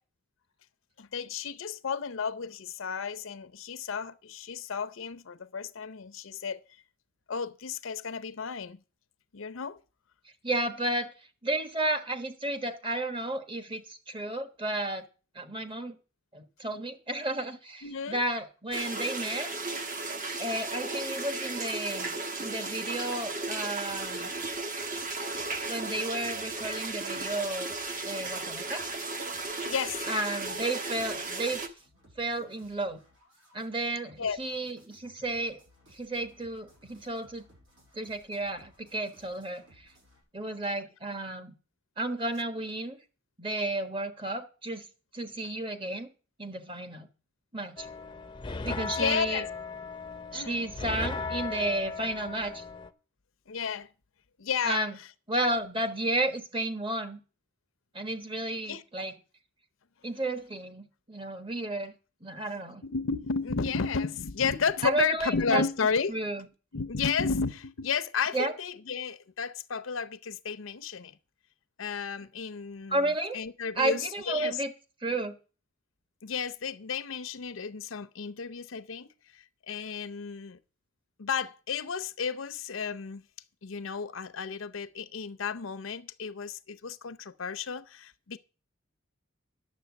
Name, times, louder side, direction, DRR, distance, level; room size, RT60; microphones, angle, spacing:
voice 1, 1.0-6.6 7.3-8.8 9.3-9.8 17.8-18.2 29.7-30.1 34.2-34.4 48.8-49.5 50.3-50.7 53.5-53.9 54.4-54.8 58.7-58.8 62.8-66.2 66.7-71.2 71.8-74.6 76.2-80.6 81.2-83.2 83.6-88.4, left 5 dB, 80° left, 0.7 m, -33 dB
voice 2, 10.4-11.1 11.4-15.1 15.3-16.0 16.3-19.5 20.4-24.3 25.7-27.7 28.1-28.8 30.1-31.6 32.2-33.0 33.5-35.6 35.9-37.4 37.9-39.9 40.3-41.5 42.0-43.0 43.4-44.9 45.1-46.1 46.4-47.1 47.5-47.9 48.6-49.4 50.3-52.6 54.6-55.0 55.3-57.2 57.9-59.1 60.0-61.9 62.2-62.8 64.8-65.6 66.1-66.4 68.3-68.5 72.9-73.4 73.8-74.7 75.0-75.4, right 2 dB, 25° right, 1.3 m, -32 dB
sound 1, 18.7-31.7, right 3 dB, 40° right, 1.2 m, -35 dB
sound 2, 23.8-40.2, equal, 70° right, 7.5 m, -61 dB
sound 3, 47.8-52.9, left 4 dB, 25° left, 0.6 m, -37 dB
10.5 x 7.2 x 7.1 m
head